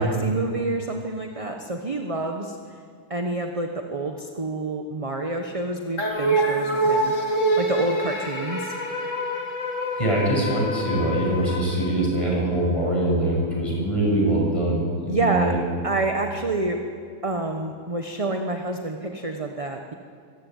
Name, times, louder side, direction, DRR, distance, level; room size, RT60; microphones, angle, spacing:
voice 1, 0.0-2.8 3.1-7.1 7.6-8.8 15.1-15.6 15.8-16.8 17.2-19.9, right 2 dB, 25° right, 4 dB, 1.1 m, -28 dB
sound 1, 6.0-12.5, right 1 dB, 50° left, 2.8 m, -26 dB
voice 2, 10.0-15.6, right 1 dB, 20° left, -2 dB, 6.8 m, -23 dB
24.5 x 15.5 x 9.4 m, 2.2 s
omnidirectional pair, 1.6 m